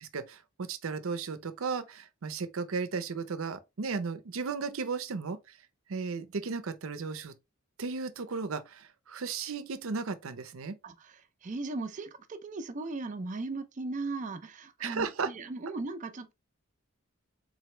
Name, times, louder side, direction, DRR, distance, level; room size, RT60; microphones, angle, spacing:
voice 1, 0.0-5.4 5.9-7.3 7.8-10.8 14.8-15.3, right 5 dB, 80° right, 0.6 m, -35 dB
voice 2, 10.8-16.3, right 3 dB, 35° right, 0.4 m, -37 dB
4.0 x 3.0 x 3.1 m
head